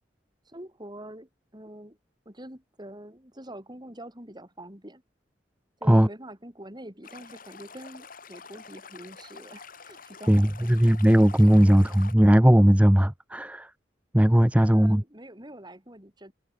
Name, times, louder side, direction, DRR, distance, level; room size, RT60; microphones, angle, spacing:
voice 1, 0.4-2.0 2.2-5.0 5.8-10.7 14.6-16.3, right 1 dB, 20° right, 6.8 m, -45 dB
Stream, 7.0-12.1, left 5 dB, 45° left, 5.2 m, -47 dB
voice 2, 10.3-13.7 14.1-15.0, equal, 5° right, 0.7 m, -18 dB
head